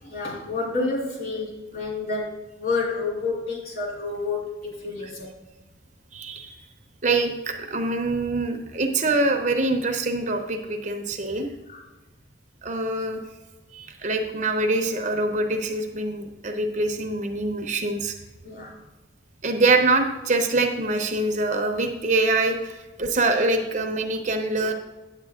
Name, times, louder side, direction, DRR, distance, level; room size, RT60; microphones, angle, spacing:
voice 1, 0.0-5.3 11.7-11.8 18.4-18.7, left 3 dB, 50° left, -3 dB, 3.2 m, -29 dB
voice 2, 6.1-6.6 7.0-11.5 12.6-13.2 13.7-18.1 19.4-24.7, right 2 dB, 40° right, 5 dB, 0.8 m, -24 dB
9.2 x 8.5 x 3.6 m, 1.1 s
head